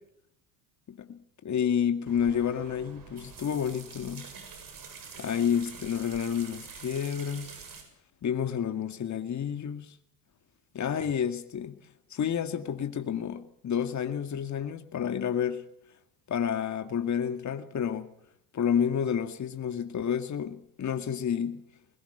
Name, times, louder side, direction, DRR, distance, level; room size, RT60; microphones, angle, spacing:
voice 1, 0.9-4.3 5.2-7.5 8.2-10.0 10.8-11.8 12.1-15.6 16.3-18.1 18.5-21.6, left 8 dB, 35° left, 2.2 m, -30 dB
sound 1, 2.1-7.8, right 5 dB, 45° right, 7.5 m, -46 dB
21.0 x 20.0 x 6.9 m
hypercardioid pair, 80°, 47 cm